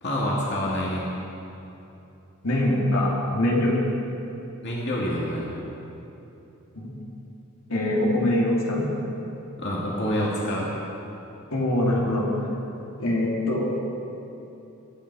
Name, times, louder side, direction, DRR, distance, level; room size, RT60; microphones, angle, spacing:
voice 1, 0.0-1.1 4.6-5.5 9.6-10.7, equal, 50° left, -5 dB, 2.4 m, -27 dB
voice 2, 2.4-3.8 6.7-6.9 7.7-8.9 11.5-12.3 13.0-13.8, left 1 dB, 75° left, -4 dB, 2.8 m, -23 dB
24.0 x 9.2 x 4.9 m, 2.9 s
head